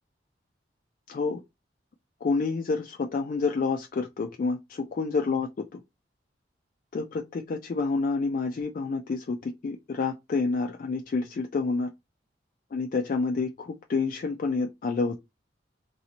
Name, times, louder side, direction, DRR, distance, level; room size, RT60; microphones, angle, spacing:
voice 1, 1.1-1.4 2.2-5.5 6.9-11.9 12.7-15.2, left 4 dB, 45° left, 0.3 m, -28 dB
3.0 x 2.8 x 2.8 m
head